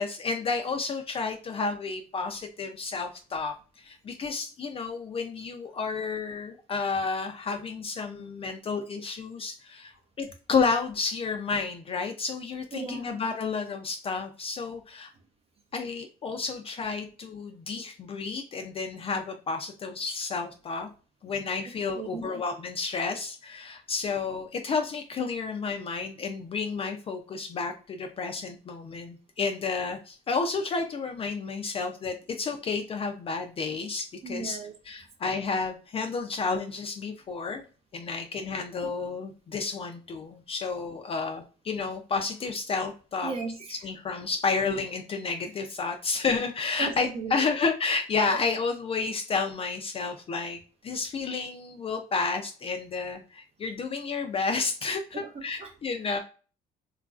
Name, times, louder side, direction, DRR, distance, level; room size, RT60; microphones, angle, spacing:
voice 1, 0.0-15.1 15.7-20.9 21.2-34.6 34.9-37.6 37.9-43.3 43.8-56.2, left 4 dB, 35° left, 5 dB, 0.4 m, -31 dB
voice 2, 12.7-13.2 22.0-22.4 34.2-34.7 37.6-37.7 43.2-43.8 46.8-47.5 48.3-48.4 55.1-55.7, right 4 dB, 35° right, 5 dB, 0.5 m, -36 dB
2.9 x 2.4 x 2.3 m, 0.36 s
cardioid pair, 110°, 17 cm